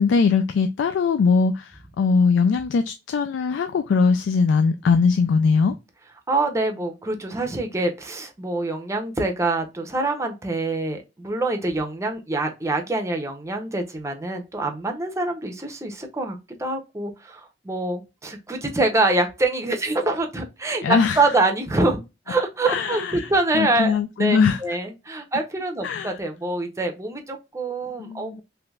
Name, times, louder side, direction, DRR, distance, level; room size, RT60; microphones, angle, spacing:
voice 1, 0.0-5.7 20.8-21.2 22.7-23.3 23.5-24.6 25.8-26.1 28.0-28.4, left 5 dB, 85° left, 0.3 m, -20 dB
voice 2, 6.3-28.4, right 2 dB, 15° right, 0.6 m, -25 dB
3.2 x 3.0 x 2.3 m
head